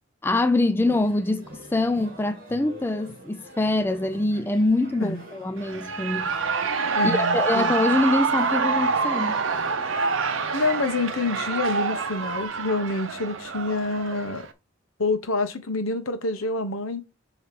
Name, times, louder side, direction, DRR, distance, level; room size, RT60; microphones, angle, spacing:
voice 1, 0.2-6.3 7.0-9.4, left 2 dB, 10° left, 0.3 m, -24 dB
sound 1, 0.8-12.5, right 1 dB, 45° right, 2.0 m, -45 dB
Shout / Cheering, 5.6-14.5, right 4 dB, 70° right, 0.8 m, -26 dB
voice 2, 7.0-7.7 10.5-14.5 15.0-17.0, left 3 dB, 85° left, 1.1 m, -27 dB
7.4 x 3.2 x 5.2 m
head